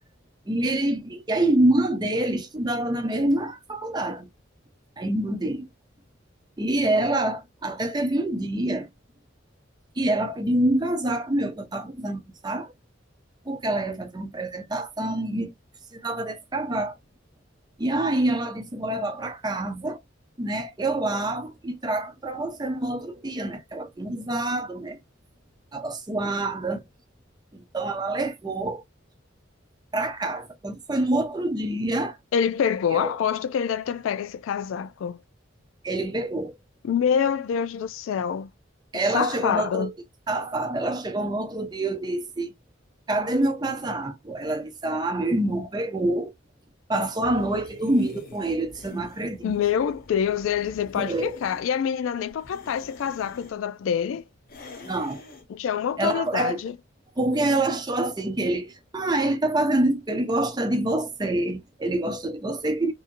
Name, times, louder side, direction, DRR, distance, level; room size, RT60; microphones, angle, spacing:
voice 1, 0.5-4.3 5.0-5.7 6.6-8.9 10.0-12.7 13.5-15.5 15.9-16.9 17.8-20.0 20.4-25.0 25.7-26.8 27.5-28.8 29.9-32.2 32.9-33.1 35.8-36.5 38.9-39.9 40.3-42.5 43.1-46.3 46.9-49.5 51.0-51.4 54.8-55.2 56.0-56.6 57.2-62.9, right 1 dB, 20° right, 0.6 m, -26 dB
voice 2, 32.3-35.2 36.8-38.5 38.9-39.9 49.4-54.3 55.5-56.8, left 8 dB, 80° left, 0.3 m, -26 dB
sound 1, 47.2-51.7 52.3-53.6 54.5-55.5, left 3 dB, 50° left, 0.8 m, -47 dB
2.7 x 2.6 x 2.5 m
head